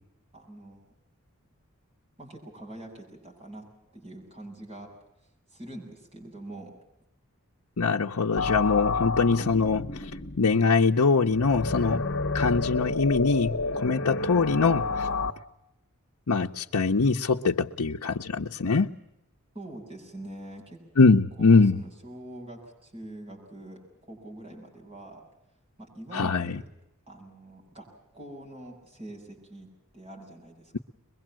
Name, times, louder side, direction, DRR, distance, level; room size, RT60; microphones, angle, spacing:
voice 1, 0.3-0.8 2.2-3.7 3.9-4.9 5.5-6.8 19.5-20.8 21.4-25.2 25.8-26.6 27.1-30.8, right 1 dB, 25° right, 0 dB, 7.5 m, -44 dB
voice 2, 7.8-10.1 10.4-12.0 12.3-15.1 16.3-19.0 21.0-21.8 26.1-26.6, left 4 dB, 90° left, 1 dB, 0.8 m, -23 dB
sound 1, 8.4-15.3, left 3 dB, 55° left, 1.2 m, -30 dB
23.0 x 22.0 x 7.5 m, 0.84 s
head